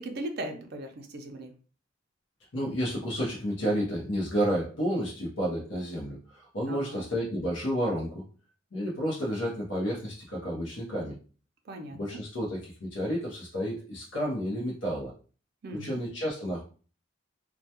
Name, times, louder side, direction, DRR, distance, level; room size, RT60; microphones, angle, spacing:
voice 1, 0.0-1.5 6.7-7.1 11.7-12.2 15.6-16.0, right 1 dB, 55° right, 5 dB, 0.4 m, -38 dB
voice 2, 2.5-8.2 8.7-11.2 11.9-15.1 15.8-16.6, equal, 70° left, -4 dB, 0.7 m, -31 dB
2.2 x 2.2 x 2.8 m, 0.39 s
head